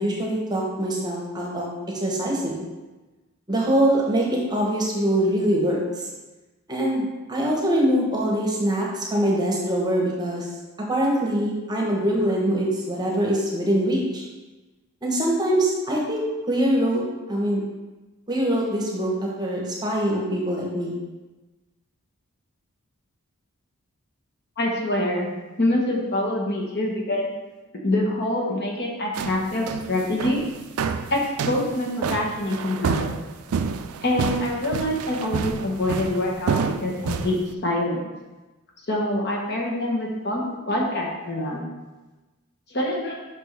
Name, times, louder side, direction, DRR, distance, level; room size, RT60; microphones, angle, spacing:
voice 1, 0.0-1.7 2.0-2.6 3.5-5.8 6.7-10.5 10.9-14.2 15.0-17.0 17.3-17.6 18.3-19.1 19.4-20.9, right 1 dB, 20° right, -2 dB, 1.0 m, -23 dB
voice 2, 24.6-25.3 25.6-27.3 27.8-30.4 31.1-33.1 34.0-36.5 36.8-37.4 37.6-38.1 38.9-41.7 42.7-43.1, left 1 dB, 50° left, -1 dB, 1.1 m, -25 dB
sound 1, 29.2-37.5, right 6 dB, 75° right, 0.4 m, -29 dB
6.0 x 5.6 x 3.3 m, 1.2 s
head